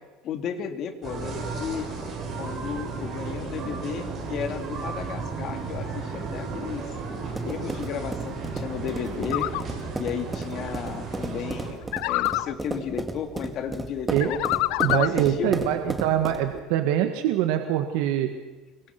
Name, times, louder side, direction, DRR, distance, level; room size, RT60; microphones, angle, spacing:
voice 1, 0.2-1.9 2.4-6.8 7.4-9.5 10.0-11.8 12.0-14.4 14.9-15.8, left 8 dB, 40° left, 6 dB, 2.8 m, -33 dB
sound 1, 1.0-11.7, right 4 dB, 30° right, 7.8 m, -34 dB
sound 2, 7.2-16.6, right 2 dB, 10° right, 2.3 m, -34 dB
sound 3, 9.3-9.6 11.9-12.5 14.2-15.2, left 19 dB, 65° left, 0.7 m, -26 dB
voice 2, 14.8-18.3, right 11 dB, 70° right, 6 dB, 2.0 m, -24 dB
28.0 x 23.5 x 6.2 m, 1.2 s
cardioid pair, 155°, 0 cm